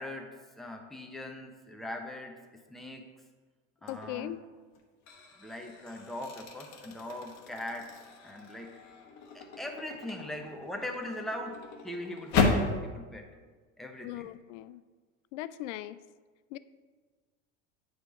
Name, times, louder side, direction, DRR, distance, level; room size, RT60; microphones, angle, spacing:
voice 1, 0.0-3.1 3.8-4.4 5.4-8.0 8.2-8.8 9.3-13.3 13.8-14.3, left 1 dB, ahead, 2 dB, 0.9 m, -41 dB
sound 1, 3.8-4.2 4.8-12.8, left 4 dB, 45° left, 1.3 m, -34 dB
voice 2, 3.9-4.4 14.0-14.8 15.3-16.0 16.5-16.6, left 14 dB, 70° left, 15 dB, 0.5 m, -39 dB
9.0 x 3.4 x 5.9 m, 1.4 s
hypercardioid pair, 95°, 39 cm